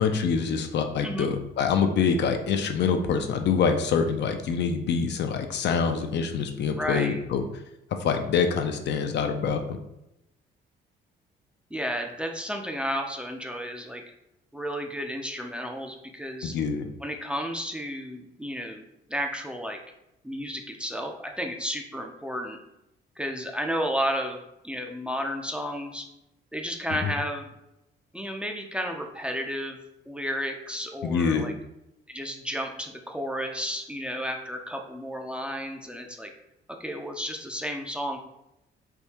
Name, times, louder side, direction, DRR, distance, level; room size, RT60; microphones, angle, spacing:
voice 1, 0.0-7.4 8.0-9.8 16.4-16.9 27.0-27.1 31.0-31.5, left 6 dB, 60° left, 6 dB, 0.5 m, -25 dB
voice 2, 6.8-7.2 11.7-14.0 14.5-16.5 17.0-18.8 19.1-19.8 20.2-22.6 23.2-24.4 24.6-26.1 26.5-27.5 28.1-29.8 30.1-31.5 32.1-36.3 36.8-38.2, equal, 5° right, 3 dB, 0.4 m, -32 dB
3.4 x 2.6 x 2.8 m, 0.85 s
cardioid pair, 90°, 20 cm